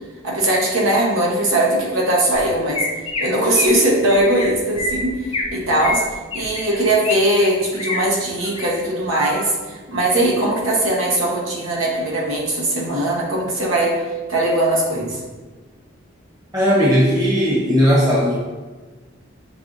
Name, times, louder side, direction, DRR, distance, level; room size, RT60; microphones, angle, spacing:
voice 1, 0.2-2.9 3.2-15.2, right 1 dB, 85° right, -2 dB, 1.0 m, -20 dB
Chirp tweet, 2.3-2.4 2.7-3.2 3.5-3.8 4.1-4.5 4.8-5.5 5.8-7.2 7.4-8.0 8.4-8.7 9.1-9.5, left 3 dB, 25° left, 0.5 m, -26 dB
voice 2, 16.5-18.4, equal, 20° right, -8 dB, 0.9 m, -16 dB
5.3 x 3.5 x 2.6 m, 1.3 s
head